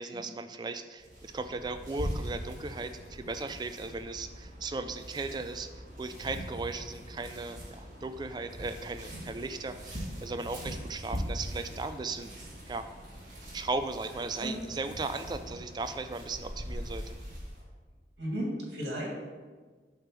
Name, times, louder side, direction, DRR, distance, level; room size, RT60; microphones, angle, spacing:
voice 1, 0.0-12.3 12.7-12.9 13.5-17.2, right 3 dB, 25° right, 9 dB, 0.3 m, -37 dB
sound 1, 1.0-17.6, equal, 45° right, 1.8 m, -42 dB
voice 2, 18.2-19.1, equal, 75° right, -2 dB, 2.0 m, -34 dB
7.8 x 3.4 x 5.9 m, 1.4 s
head